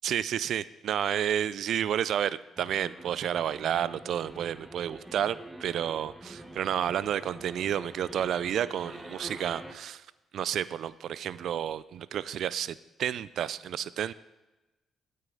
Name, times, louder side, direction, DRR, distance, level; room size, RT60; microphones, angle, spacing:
voice 1, 0.0-10.1 10.3-14.1, right 10 dB, 70° right, 17 dB, 0.3 m, -31 dB
sound 1, 2.5-9.7, right 1 dB, 5° right, 1.2 m, -46 dB
15.5 x 6.4 x 3.9 m, 1.0 s
cardioid pair, 90°, 0 cm